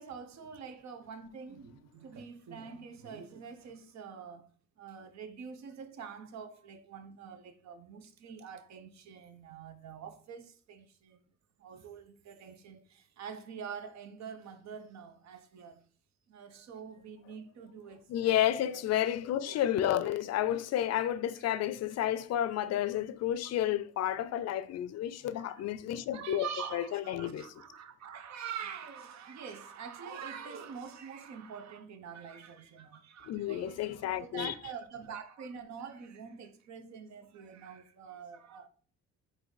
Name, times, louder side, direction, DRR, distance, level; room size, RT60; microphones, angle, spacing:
voice 1, 0.0-4.5 4.8-11.2 11.6-15.8 16.3-18.4 18.7-18.8 19.5-19.6 25.3-25.6 26.1-38.7, right 6 dB, 65° right, 0.8 m, -45 dB
voice 2, 18.1-27.5 33.3-34.5, left 11 dB, 55° left, 0.4 m, -31 dB
3.9 x 2.7 x 4.7 m
cardioid pair, 90°, 30 cm